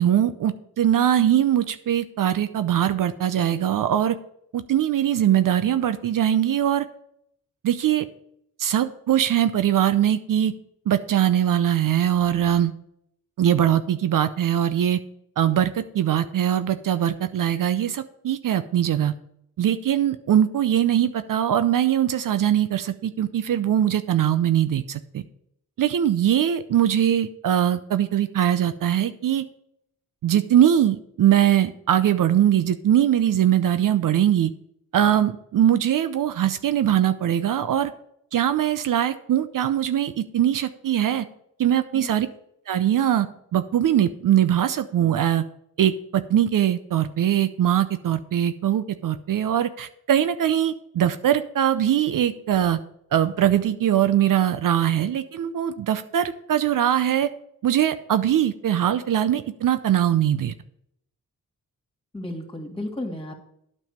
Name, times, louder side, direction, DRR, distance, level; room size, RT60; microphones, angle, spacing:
voice 1, 0.0-4.2 4.5-6.9 7.6-8.1 8.6-10.5 10.9-12.7 13.4-15.0 15.4-19.1 19.6-25.2 25.8-29.4 30.2-34.5 34.9-37.9 38.3-41.2 41.6-42.3 42.7-43.3 43.5-45.4 45.8-52.8 53.1-57.3 57.6-60.5, right 10 dB, 65° right, 11 dB, 0.6 m, -21 dB
voice 2, 41.7-42.2 62.1-63.3, left 1 dB, 15° left, 2 dB, 2.6 m, -33 dB
9.1 x 5.4 x 6.7 m, 0.73 s
supercardioid pair, 50°, 35 cm